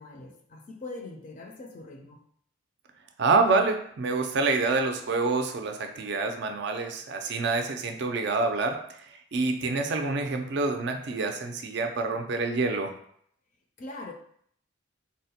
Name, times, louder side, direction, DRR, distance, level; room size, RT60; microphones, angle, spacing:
voice 1, 0.0-2.2 13.8-14.1, left 2 dB, 40° left, 0.4 m, -42 dB
voice 2, 3.2-12.9, right 3 dB, 50° right, 0.4 m, -27 dB
3.8 x 2.1 x 2.7 m
head